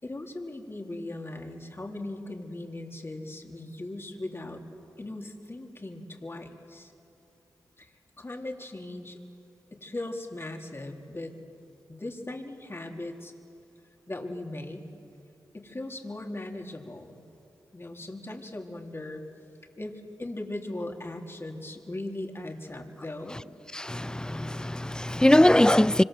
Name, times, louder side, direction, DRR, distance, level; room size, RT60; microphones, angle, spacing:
voice 1, 0.0-4.6 5.0-6.9 7.8-9.2 9.7-11.3 11.9-13.3 14.1-14.9 15.5-17.2 17.7-19.2 19.8-23.4, left 2 dB, 35° left, 3.4 m, -38 dB
voice 2, 23.7-26.0, left 1 dB, 10° left, 0.5 m, -21 dB
25.5 x 25.5 x 7.7 m
cardioid pair, 45°, 7 cm